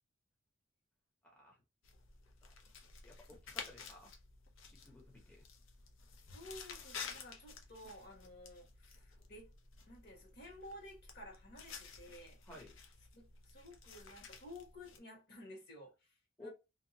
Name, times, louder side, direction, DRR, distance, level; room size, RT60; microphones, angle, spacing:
voice 1, 1.2-1.6 3.0-4.1 4.8-5.4 12.5-12.7 16.4-16.5, left 1 dB, 5° left, 0.7 m, -55 dB
sound 1, 1.8-15.0, left 5 dB, 85° left, 0.6 m, -52 dB
voice 2, 6.3-9.5 9.9-12.4 13.1-16.5, left 1 dB, 55° left, 1.4 m, -54 dB
2.7 x 2.3 x 2.7 m
head